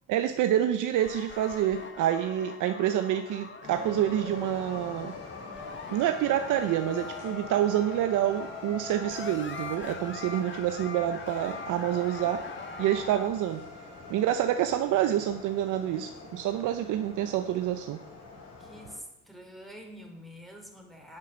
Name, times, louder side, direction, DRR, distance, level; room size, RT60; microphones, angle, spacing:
voice 1, 0.1-5.1 5.9-12.5 12.8-13.6 14.1-18.0, right 11 dB, 90° right, 8 dB, 0.7 m, -27 dB
sound 1, 1.0-13.3, left 4 dB, 40° left, 1.7 m, -43 dB
sound 2, 3.6-19.0, left 4 dB, 60° left, 5.6 m, -43 dB
voice 2, 18.6-21.2, equal, ahead, 1 dB, 3.0 m, -46 dB
11.0 x 7.6 x 6.3 m, 0.83 s
cardioid pair, 90°, 30 cm